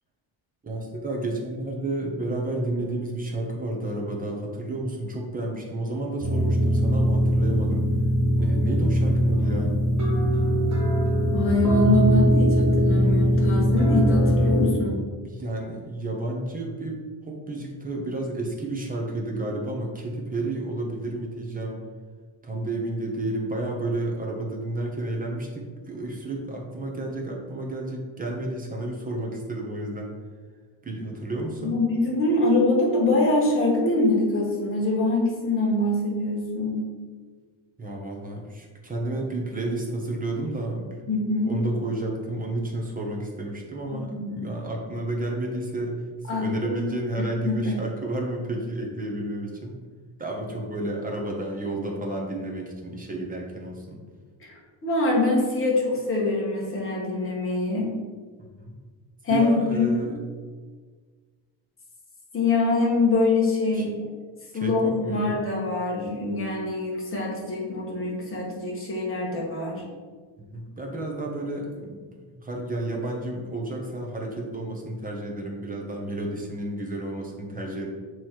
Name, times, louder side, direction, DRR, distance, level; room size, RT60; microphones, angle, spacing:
voice 1, 0.6-7.9 8.4-9.8 15.2-21.8 22.4-30.1 30.8-31.8 37.8-41.0 41.5-49.7 50.2-54.0 58.4-58.8 59.3-60.2 63.7-63.9 64.5-65.4 70.4-77.9, right 2 dB, 15° right, 0 dB, 0.8 m, -31 dB
sound 1, 6.2-14.7, equal, 35° right, 1.7 m, -21 dB
voice 2, 11.3-15.0 31.6-36.9 41.1-41.5 43.9-44.4 46.3-46.9 47.2-47.8 54.4-57.9 59.2-60.2 62.3-64.0 64.5-69.8, left 2 dB, 25° left, -4 dB, 1.5 m, -24 dB
7.5 x 3.2 x 4.4 m, 1.5 s
cardioid pair, 175°, 49 cm